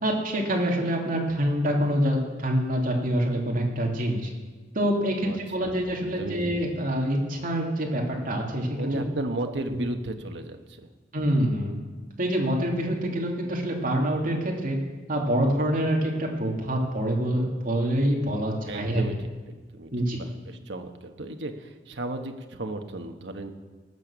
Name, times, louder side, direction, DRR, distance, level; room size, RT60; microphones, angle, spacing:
voice 1, 0.0-4.3 4.7-8.7 9.7-9.8 11.1-11.8 12.2-14.8 15.1-19.0 19.9-20.2, equal, 50° right, -1 dB, 2.7 m, -26 dB
voice 2, 5.0-6.4 8.8-10.9 18.7-19.9 20.2-23.5, right 2 dB, 70° right, 5 dB, 1.2 m, -35 dB
18.5 x 6.9 x 7.3 m, 1.3 s
head